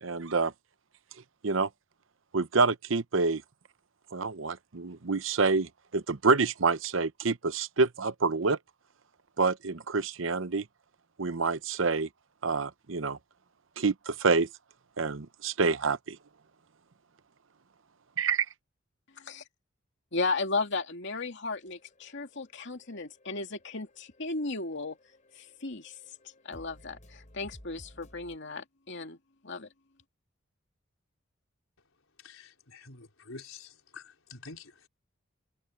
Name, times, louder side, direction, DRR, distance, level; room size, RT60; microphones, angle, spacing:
voice 1, 0.0-0.5 1.4-1.7 2.3-3.4 4.1-8.6 9.4-10.6 11.2-12.1 12.4-13.2 13.8-14.5 15.0-16.2 18.2-18.5, right 4 dB, 70° right, 0.8 m, -27 dB
voice 2, 20.1-25.0 25.4-25.9 26.4-29.2 29.4-29.7, left 3 dB, 60° left, 2.6 m, -35 dB
sound 1, 21.6-28.4, equal, 40° left, 6.6 m, -57 dB
voice 3, 32.2-34.9, left 4 dB, 90° left, 4.2 m, -48 dB
head